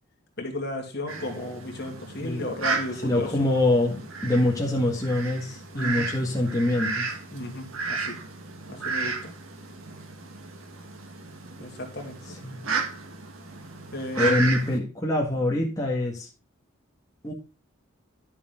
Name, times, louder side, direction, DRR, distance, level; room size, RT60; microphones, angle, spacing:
voice 1, 0.4-3.4 5.7-6.1 7.3-8.2 8.7-9.3 11.6-12.4 13.9-14.5, left 1 dB, 50° left, 2 dB, 2.4 m, -34 dB
Fowl, 1.1-14.8, right 4 dB, 80° right, 1.7 m, -34 dB
voice 2, 3.0-7.1 12.4-12.6 14.2-16.3 17.2-17.3, left 1 dB, 15° left, -2 dB, 1.8 m, -25 dB
11.0 x 7.0 x 3.8 m, 0.31 s
head